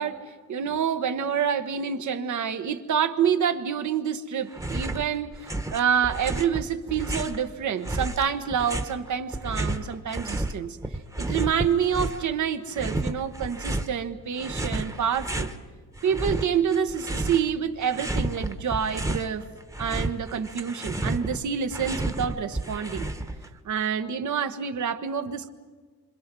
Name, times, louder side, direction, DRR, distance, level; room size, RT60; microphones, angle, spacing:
voice 1, 0.0-10.8 11.2-15.5 16.0-19.4 19.8-23.1 23.6-25.5, right 7 dB, 70° right, 8 dB, 1.4 m, -27 dB
sound 1, 4.5-5.1 5.3-7.4 7.8-10.5 10.8-12.3 12.7-13.9 14.4-15.6 16.0-17.5 17.8-19.3 19.6-23.5, right 2 dB, 10° right, 1.1 m, -31 dB
27.0 x 25.5 x 6.1 m, 1.5 s
wide cardioid pair, 160°, 30 cm